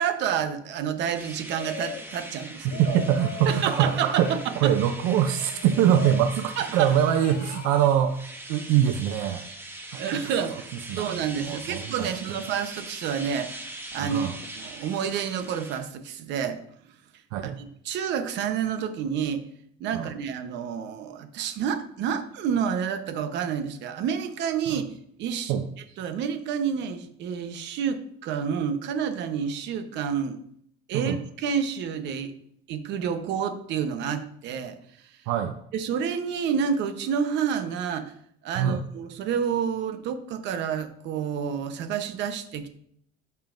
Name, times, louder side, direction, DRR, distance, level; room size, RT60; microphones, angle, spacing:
voice 1, 0.0-3.0 3.5-4.7 6.6-6.9 9.9-10.7 11.0-14.3 14.6-16.6 17.4-19.4 19.8-25.5 26.0-30.4 30.9-32.3 32.7-34.8 35.7-38.1 38.4-42.7, right 7 dB, 60° right, 8 dB, 1.0 m, -29 dB
sound 1, 1.1-15.8, right 1 dB, 10° right, 1.0 m, -42 dB
sound 2, 1.5-2.1 2.6-4.5 5.1-6.3 6.8-7.9, left 8 dB, 45° left, 0.5 m, -40 dB
voice 2, 2.6-8.2 8.5-9.4 9.9-10.0 10.5-10.6 10.9-12.4 14.0-14.4 17.3-17.6 19.9-20.1 24.7-24.8 25.5-25.7 30.9-31.2 35.3-35.6 38.6-38.8, right 9 dB, 85° right, 8 dB, 0.6 m, -24 dB
14.0 x 5.5 x 2.6 m, 0.67 s
cardioid pair, 135°, 21 cm